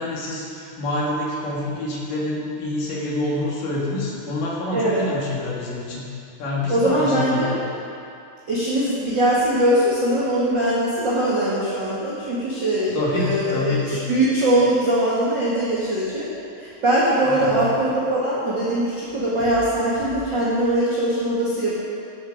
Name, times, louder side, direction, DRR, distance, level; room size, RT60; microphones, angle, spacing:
voice 1, 0.0-6.1 6.4-7.6 12.9-14.0 17.2-17.6, left 2 dB, 60° left, -4 dB, 3.3 m, -27 dB
voice 2, 4.7-5.0 6.7-7.5 8.5-16.3 16.6-21.7, right 1 dB, 40° right, -8 dB, 1.7 m, -21 dB
15.5 x 8.0 x 4.9 m, 2.5 s
omnidirectional pair, 4.7 m